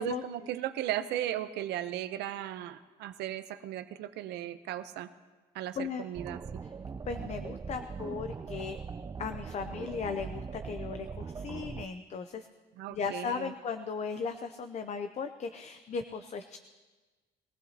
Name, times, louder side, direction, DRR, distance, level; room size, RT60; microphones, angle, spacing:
voice 1, 0.0-5.1 5.5-6.4 12.8-13.5, right 12 dB, 80° right, 11 dB, 0.8 m, -36 dB
voice 2, 5.8-6.1 7.1-8.8 9.2-12.5 12.9-16.6, left 5 dB, 40° left, 8 dB, 0.7 m, -37 dB
sound 1, 6.1-11.9, right 5 dB, 20° right, 0.4 m, -40 dB
22.0 x 15.5 x 2.9 m, 1.3 s
cardioid pair, 110°, 17 cm